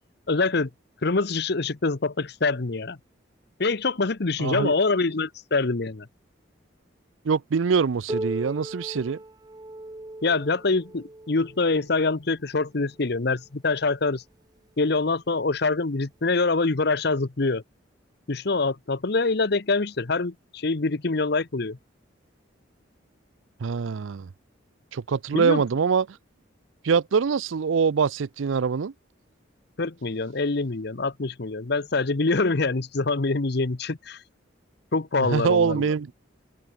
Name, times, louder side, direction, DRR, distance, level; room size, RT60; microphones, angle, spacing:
voice 1, 0.3-0.7 1.0-3.0 3.6-6.1 10.2-14.2 14.8-17.6 18.3-21.8 25.3-25.6 29.8-34.2 34.9-35.9, left 3 dB, 55° left, 0.9 m, -25 dB
voice 2, 4.4-4.7 7.2-9.2 23.6-24.3 24.9-26.1 26.8-28.9 35.2-36.1, right 5 dB, 80° right, 0.5 m, -24 dB
Piano, 8.1-13.4 14.3-14.4 14.9-15.0 15.8-15.9 16.9-17.0, right 1 dB, 20° right, 0.6 m, -38 dB
head